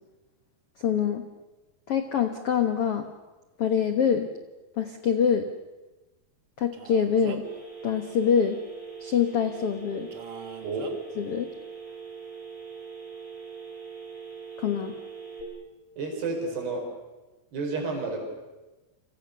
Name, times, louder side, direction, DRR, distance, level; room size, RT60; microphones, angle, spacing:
voice 1, 0.8-1.2 1.9-3.1 3.6-4.3 4.8-5.5 6.6-7.4 7.8-8.6 9.0-10.1 11.2-11.5 14.6-14.9, left 7 dB, 90° left, 7 dB, 1.2 m, -25 dB
Male speech man speaking, 6.7-7.6 10.1-10.9, right 6 dB, 40° right, 2.2 m, -42 dB
Telephone, 7.4-15.4, right 6 dB, 25° left, 6.2 m, -42 dB
voice 2, 16.0-16.9 17.5-18.2, right 3 dB, 70° right, 2 dB, 7.3 m, -30 dB
29.5 x 25.5 x 6.9 m, 1.1 s
omnidirectional pair, 4.9 m